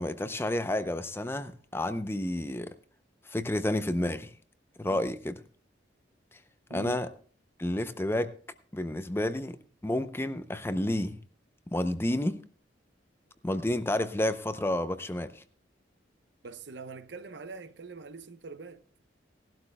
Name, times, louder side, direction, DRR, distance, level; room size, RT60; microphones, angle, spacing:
voice 1, 0.0-2.7 3.3-4.3 4.8-5.4 6.7-7.1 7.6-8.3 8.7-9.6 9.8-11.2 11.7-12.4 13.4-15.4, left 1 dB, 15° left, 0.5 m, -30 dB
voice 2, 6.7-7.0 16.4-18.8, right 3 dB, 65° right, 0.8 m, -43 dB
18.0 x 12.0 x 2.2 m
head